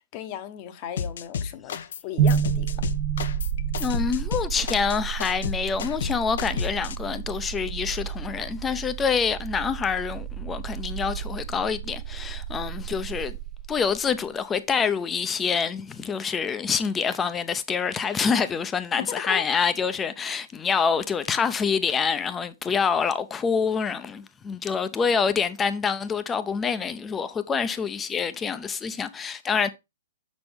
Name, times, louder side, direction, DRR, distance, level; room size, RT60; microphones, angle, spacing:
voice 1, 0.1-1.8 2.0-2.9 19.0-19.4, left 11 dB, 35° left, 0.9 m, -35 dB
sound 1, 1.0-2.0 2.3-7.0, left 7 dB, 65° left, 0.6 m, -32 dB
sound 2, 2.2-14.2, right 8 dB, 35° right, 0.6 m, -30 dB
voice 2, 3.8-13.4 13.7-29.7, left 6 dB, 15° left, 0.6 m, -26 dB
6.6 x 6.2 x 3.5 m
hypercardioid pair, 155°, 0 cm